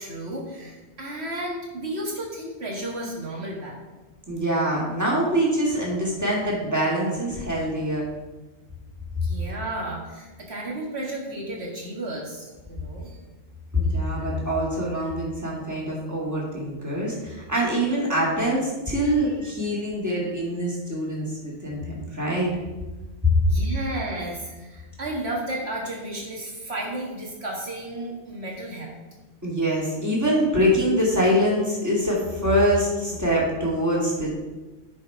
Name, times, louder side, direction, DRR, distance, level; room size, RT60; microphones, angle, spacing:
voice 1, 0.0-4.0 9.2-13.2 14.2-14.3 15.0-15.1 19.0-19.1 20.2-20.3 23.5-29.0, right 1 dB, 70° right, -2 dB, 2.1 m, -33 dB
voice 2, 4.3-8.0 13.7-22.5 29.4-34.3, equal, 15° right, -5 dB, 2.2 m, -24 dB
9.9 x 4.4 x 4.7 m, 1.2 s
omnidirectional pair, 1.1 m